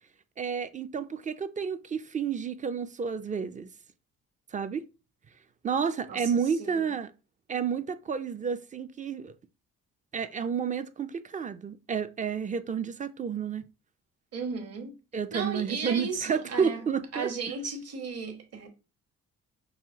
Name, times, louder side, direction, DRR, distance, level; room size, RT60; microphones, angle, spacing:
voice 1, 0.4-3.7 4.5-4.9 5.6-7.1 7.5-9.3 10.1-13.6 15.1-17.3, right 6 dB, 25° right, 0.4 m, -30 dB
voice 2, 6.1-6.9 14.3-14.9 15.3-16.8 17.1-18.7, right 4 dB, 55° right, 1.3 m, -35 dB
5.5 x 2.5 x 2.8 m
cardioid pair, 90°, 30 cm